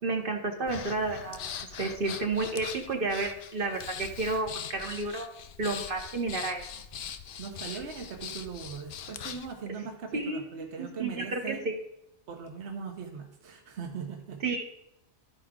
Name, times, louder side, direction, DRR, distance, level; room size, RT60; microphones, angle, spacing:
voice 1, 0.0-1.4 1.8-5.3 5.6-6.6 10.1-11.8 14.4-14.6, right 3 dB, 50° right, 3 dB, 1.1 m, -31 dB
Breathing, 0.7-9.5, left 7 dB, 60° left, 0.7 m, -41 dB
voice 2, 7.4-11.6 12.3-14.4, right 6 dB, 70° right, 2 dB, 1.3 m, -40 dB
12.5 x 4.8 x 3.6 m, 0.82 s
omnidirectional pair, 1.2 m